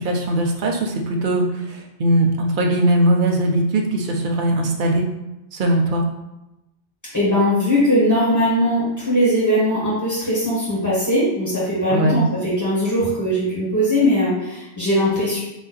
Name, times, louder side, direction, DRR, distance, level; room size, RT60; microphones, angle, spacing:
voice 1, 0.0-5.1 5.5-6.1 11.9-12.2, right 1 dB, 55° right, 1 dB, 0.9 m, -20 dB
voice 2, 7.1-15.4, equal, 15° left, -9 dB, 1.7 m, -20 dB
4.4 x 2.8 x 4.2 m, 0.94 s
omnidirectional pair, 1.0 m